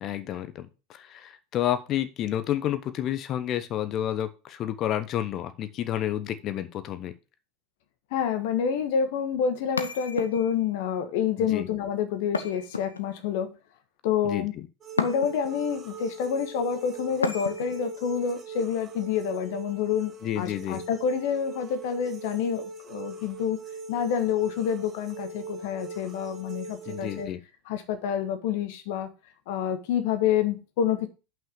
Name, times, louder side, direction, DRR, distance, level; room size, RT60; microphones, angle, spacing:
voice 1, 0.0-7.1 11.4-11.7 14.2-14.5 20.2-20.8 26.9-27.4, left 11 dB, 40° left, 1.0 m, -30 dB
voice 2, 8.1-13.5 14.0-14.5 15.0-23.6 23.9-27.3 27.6-29.1 29.5-31.1, left 8 dB, 55° left, 1.3 m, -28 dB
sound 1, 9.8-10.7 12.3-13.3 15.0-15.6 17.2-17.9, left 4 dB, 80° left, 0.7 m, -32 dB
sound 2, 14.8-27.2, right 4 dB, 30° right, 1.9 m, -40 dB
5.8 x 5.6 x 6.9 m
figure-of-eight pair, 80°, 0 cm